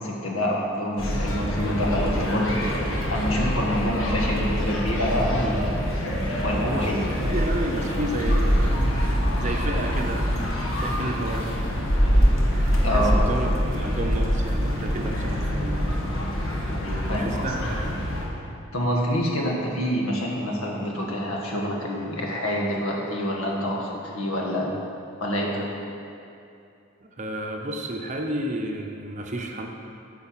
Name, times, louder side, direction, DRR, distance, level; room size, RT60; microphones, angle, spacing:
voice 1, 0.0-5.8 6.4-7.0 12.8-13.2 16.7-17.5 18.7-24.7 25.2-25.7, equal, 85° left, -2 dB, 1.4 m, -27 dB
sound 1, 1.0-18.3, equal, 70° left, 1.3 m, -25 dB
voice 2, 6.6-10.3 10.7-11.6 12.5-16.0 16.9-18.0 27.0-29.7, right 1 dB, 35° right, 2 dB, 0.7 m, -32 dB
8.9 x 4.5 x 7.3 m, 2.6 s
head